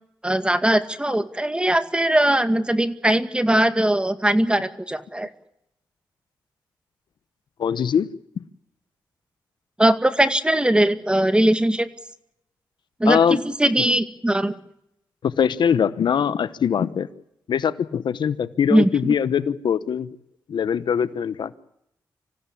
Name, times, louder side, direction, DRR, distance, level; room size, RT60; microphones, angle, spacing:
voice 1, 0.2-5.3 9.8-11.9 13.0-14.5 18.7-18.9, right 1 dB, 10° right, 10 dB, 2.1 m, -20 dB
voice 2, 7.6-8.1 8.4-8.5 13.0-13.4 15.2-17.1 17.5-20.1 20.5-21.6, left 7 dB, 75° left, 15 dB, 1.0 m, -22 dB
26.0 x 15.5 x 8.5 m, 0.79 s
cardioid pair, 60°, 8 cm